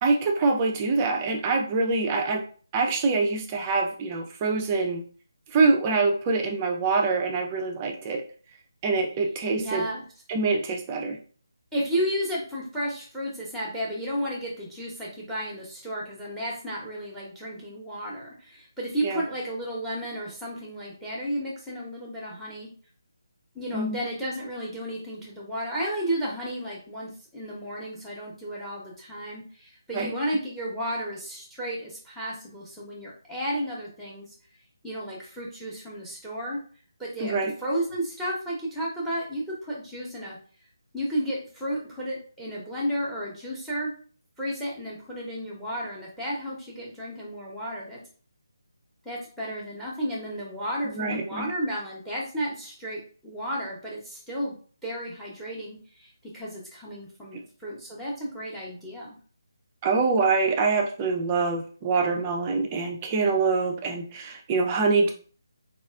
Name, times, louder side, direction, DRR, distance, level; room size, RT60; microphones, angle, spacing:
voice 1, 0.0-2.4 2.7-5.0 5.5-8.2 8.8-9.8 10.3-11.2 19.0-19.2 23.7-24.0 29.9-30.1 37.2-37.5 50.8-51.5 59.8-65.1, right 4 dB, 20° right, 3 dB, 0.5 m, -25 dB
voice 2, 9.5-10.0 11.7-22.7 23.5-34.3 34.8-36.6 37.0-40.4 40.9-43.9 44.4-48.0 49.0-59.2, equal, ahead, -3 dB, 0.9 m, -33 dB
4.0 x 2.4 x 2.4 m, 0.42 s
figure-of-eight pair, 155°, 2 cm